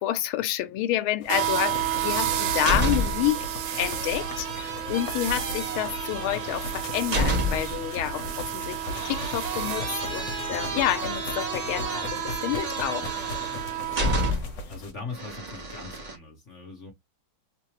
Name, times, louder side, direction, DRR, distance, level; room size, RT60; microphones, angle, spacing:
voice 1, 0.0-3.5 3.8-13.0, left 13 dB, 75° left, 1.4 m, -29 dB
sound 1, 1.2-14.9, left 2 dB, 60° left, 1.5 m, -38 dB
sound 2, 1.3-14.3, right 12 dB, 85° right, 1.7 m, -32 dB
sound 3, 2.3-3.3 3.7-7.8 8.8-14.7 15.1-16.2, equal, 30° right, 0.9 m, -31 dB
voice 2, 14.7-16.9, left 4 dB, 40° left, 1.2 m, -40 dB
3.8 x 2.7 x 3.0 m
omnidirectional pair, 2.4 m